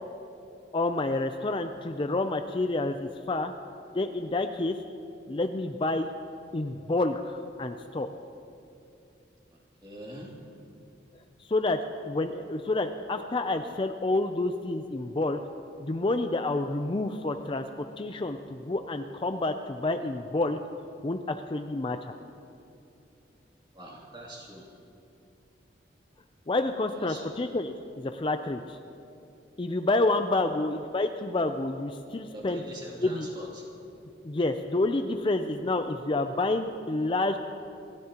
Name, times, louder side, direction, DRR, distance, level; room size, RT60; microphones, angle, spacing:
voice 1, 0.7-3.5 3.9-4.8 5.3-6.1 6.5-8.1 11.5-15.4 15.8-20.6 21.0-22.1 26.5-28.8 29.6-32.6 33.0-33.3 34.2-37.4, left 2 dB, 25° left, 7 dB, 0.5 m, -29 dB
voice 2, 9.5-10.3 23.7-24.8 27.0-27.5 32.3-33.6, right 1 dB, 25° right, -3 dB, 2.6 m, -44 dB
27.5 x 14.0 x 2.9 m, 2.7 s
head